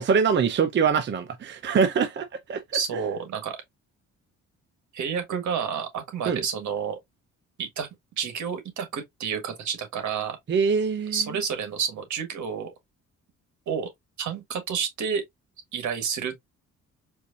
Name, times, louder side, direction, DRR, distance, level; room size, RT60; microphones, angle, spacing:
voice 1, 0.0-2.6 6.3-6.4 10.5-11.2, right 6 dB, 40° right, 0.6 m, -23 dB
voice 2, 2.7-3.6 4.9-7.0 7.6-7.9 8.2-10.4 11.1-12.7 13.7-13.9 14.2-15.2 15.7-16.3, right 7 dB, 70° right, 1.5 m, -30 dB
4.5 x 2.6 x 2.5 m
cardioid pair, 90°, 30 cm